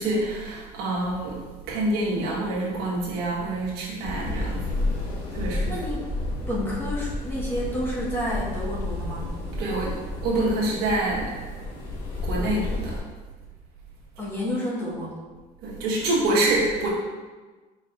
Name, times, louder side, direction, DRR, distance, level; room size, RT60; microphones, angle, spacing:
voice 1, 0.0-1.4 1.7-4.9 5.3-5.7 9.5-11.3 12.2-13.0 15.6-16.9, right 2 dB, 85° right, -5 dB, 1.4 m, -26 dB
sound 1, 4.0-13.0, left 2 dB, 85° left, 1.2 m, -31 dB
voice 2, 5.7-6.1 6.5-9.3 14.2-15.2, equal, 15° left, -6 dB, 1.1 m, -30 dB
4.7 x 4.5 x 2.4 m, 1.3 s
cardioid pair, 130°, 16 cm